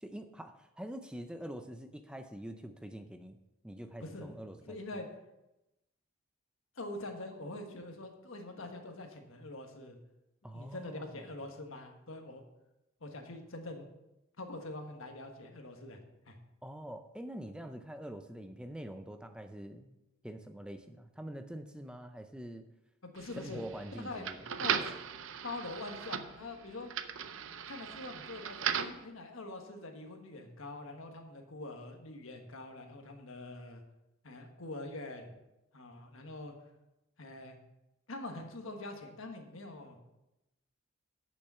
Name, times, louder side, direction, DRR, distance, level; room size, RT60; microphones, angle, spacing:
voice 1, 0.0-3.4 3.6-4.8 10.4-11.3 16.6-20.0 20.2-22.6 23.4-24.4, right 1 dB, 5° right, 7 dB, 0.4 m, -45 dB
voice 2, 4.0-4.3 4.7-5.1 6.8-10.0 10.5-12.4 13.0-13.9 14.4-16.0 16.3-16.4 23.0-23.6 24.0-24.2 24.6-24.9 25.4-26.9 27.7-33.8 34.2-35.3 35.7-36.5 37.2-37.6 38.1-40.0, left 2 dB, 75° left, 4 dB, 1.4 m, -44 dB
sound 1, 23.2-29.0, right 8 dB, 65° right, 0.6 m, -38 dB
8.6 x 6.8 x 5.6 m, 0.93 s
head